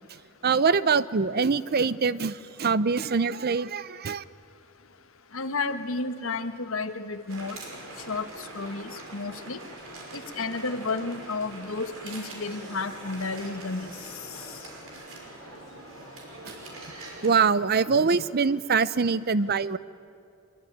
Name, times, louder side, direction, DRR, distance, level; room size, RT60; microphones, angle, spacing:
voice 1, 0.4-4.2 16.4-16.5 17.2-19.8, right 5 dB, 50° right, 17 dB, 0.7 m, -24 dB
voice 2, 5.3-7.6 8.1-9.6 10.1-13.9 14.3-14.5, left 3 dB, 85° left, 9 dB, 1.4 m, -32 dB
sound 1, 7.3-17.3, right 2 dB, 80° right, 5.9 m, -43 dB
24.0 x 23.0 x 9.4 m, 2.5 s
head